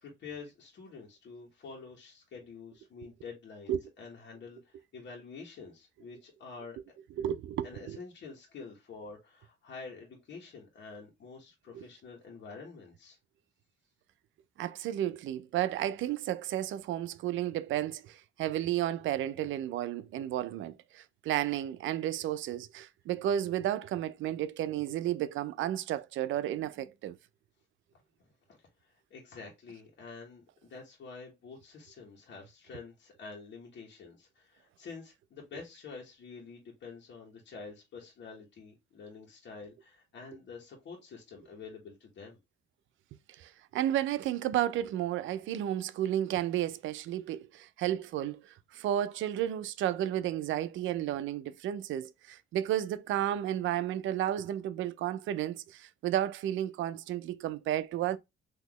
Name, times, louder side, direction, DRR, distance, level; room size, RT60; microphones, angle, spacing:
voice 1, 0.0-6.8 7.6-13.2 28.5-42.4, left 4 dB, 65° left, 1.4 m, -48 dB
voice 2, 7.2-8.0 11.7-11.8 14.6-27.2 43.4-58.2, right 12 dB, 80° right, 0.5 m, -32 dB
4.0 x 2.9 x 3.0 m
cardioid pair, 90°, 20 cm